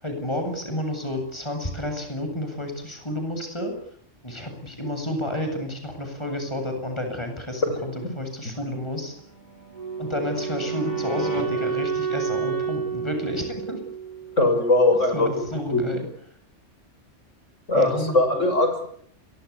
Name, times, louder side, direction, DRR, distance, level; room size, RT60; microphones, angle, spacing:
voice 1, 0.0-3.8 4.2-9.1 10.0-13.8 15.1-16.1 17.7-18.4, left 1 dB, 20° left, 5 dB, 7.9 m, -30 dB
sound 1, 8.6-11.4 14.4-15.6, equal, 35° left, 7.2 m, -40 dB
Wind instrument woodwind instrument, 9.7-14.8, right 7 dB, 35° right, 4.1 m, -30 dB
voice 2, 14.4-15.3 15.7-15.8 17.7-18.9, left 2 dB, 85° left, 7 dB, 7.1 m, -20 dB
29.0 x 24.0 x 8.5 m, 0.63 s
omnidirectional pair, 1.2 m